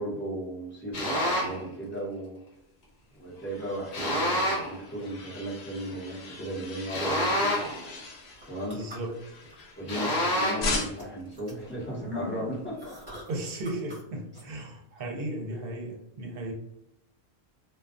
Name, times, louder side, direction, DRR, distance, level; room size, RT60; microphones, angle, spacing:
voice 1, 0.0-2.4 3.1-7.6 8.4-8.8 9.7-13.0 16.3-16.4, right 1 dB, 10° left, -6 dB, 0.8 m, -35 dB
sound 1, 0.9-1.6 3.9-4.8 6.9-7.9 9.9-10.8, equal, 50° left, 1.0 m, -27 dB
sound 2, 2.9-10.2 10.6-11.3, left 3 dB, 80° left, 0.8 m, -39 dB
sound 3, 8.3-9.6 9.9-10.4 10.8-14.0 14.3-14.4, left 1 dB, 25° right, 1.0 m, -41 dB
voice 2, 8.7-9.1 13.3-16.5, right 1 dB, 65° right, 0 dB, 0.8 m, -35 dB
2.3 x 2.2 x 2.4 m, 0.83 s
omnidirectional pair, 1.1 m